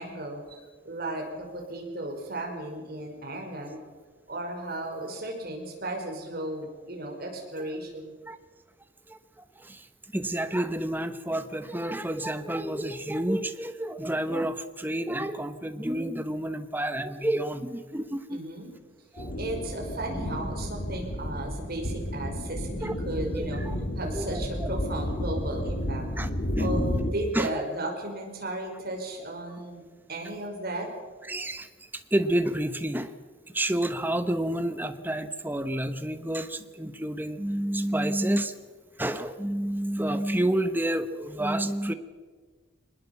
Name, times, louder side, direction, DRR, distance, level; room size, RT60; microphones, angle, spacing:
voice 1, 0.0-3.8 4.3-8.1 18.3-18.7 19.4-23.6 24.0-26.0 26.6-29.8 30.1-30.9, right 1 dB, 45° right, 1 dB, 5.5 m, -35 dB
voice 2, 10.1-18.4 19.1-19.3 22.8-22.9 23.3-23.8 24.1-24.7 26.2-26.3 26.6-26.7 27.3-27.5 31.3-33.1 33.5-38.5 39.0-41.9, right 1 dB, 10° right, 9 dB, 1.1 m, -29 dB
sound 1, 19.2-27.1, left 1 dB, 50° left, 2.6 m, -31 dB
23.5 x 21.0 x 7.3 m, 1.4 s
head